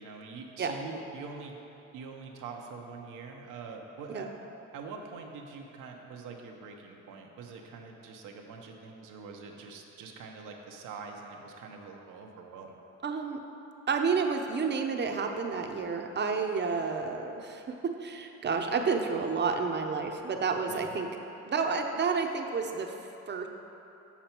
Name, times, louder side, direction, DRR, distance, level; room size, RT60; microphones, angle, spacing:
voice 1, 0.0-1.5 1.9-4.3 4.7-12.8 20.7-20.9, right 4 dB, 90° right, 2 dB, 0.9 m, -44 dB
voice 2, 13.0-13.4 13.9-21.1 21.5-22.9 23.3-23.5, right 5 dB, 35° right, 4 dB, 0.7 m, -30 dB
7.1 x 6.8 x 4.4 m, 2.9 s
cardioid pair, 90°, 30 cm